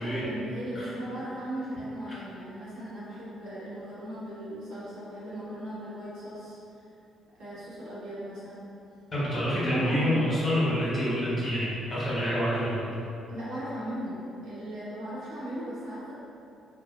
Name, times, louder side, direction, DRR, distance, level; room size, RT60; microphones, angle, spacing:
voice 1, 0.0-6.6 7.4-8.7 9.3-10.3 13.3-14.2 14.4-16.1, right 1 dB, 70° right, -11 dB, 0.9 m, -37 dB
voice 2, 9.1-12.9, equal, 40° left, -9 dB, 1.2 m, -27 dB
2.5 x 2.2 x 2.6 m, 2.7 s
hypercardioid pair, 45°, 0 cm